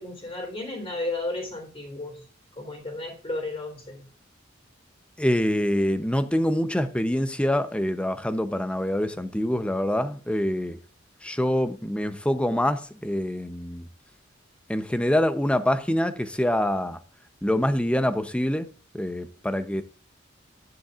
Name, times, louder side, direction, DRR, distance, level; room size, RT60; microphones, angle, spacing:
voice 1, 0.0-2.2 2.6-4.0, left 2 dB, 30° left, 3.8 m, -33 dB
voice 2, 5.2-10.8 11.2-13.9 14.7-17.0 17.4-18.7 18.9-19.8, left 1 dB, 5° left, 0.7 m, -25 dB
12.5 x 10.0 x 2.5 m
head